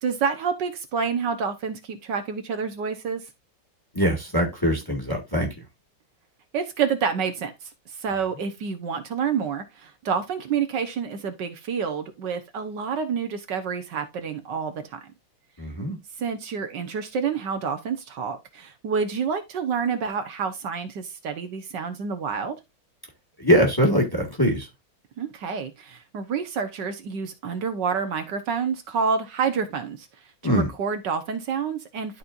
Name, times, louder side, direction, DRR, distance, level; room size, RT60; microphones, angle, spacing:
voice 1, 0.0-3.3 6.5-15.0 16.2-22.6 25.2-30.1 30.4-32.2, right 6 dB, 65° right, 1.5 m, -28 dB
voice 2, 3.9-5.5 15.6-16.0 23.4-24.7 30.4-30.7, equal, 10° left, 1.6 m, -22 dB
12.0 x 4.3 x 2.5 m
omnidirectional pair, 2.1 m